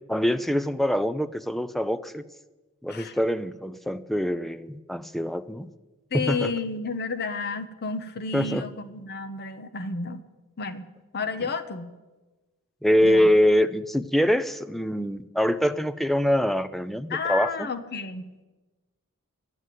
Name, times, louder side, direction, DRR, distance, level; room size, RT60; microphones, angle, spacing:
voice 1, 0.1-2.2 2.8-5.7 6.1-6.5 8.3-8.7 12.8-17.7, equal, ahead, 11 dB, 0.4 m, -24 dB
voice 2, 6.1-10.2 10.6-11.9 13.0-13.3 17.1-18.3, left 4 dB, 45° left, 11 dB, 0.8 m, -31 dB
11.0 x 8.1 x 9.1 m, 1.2 s
head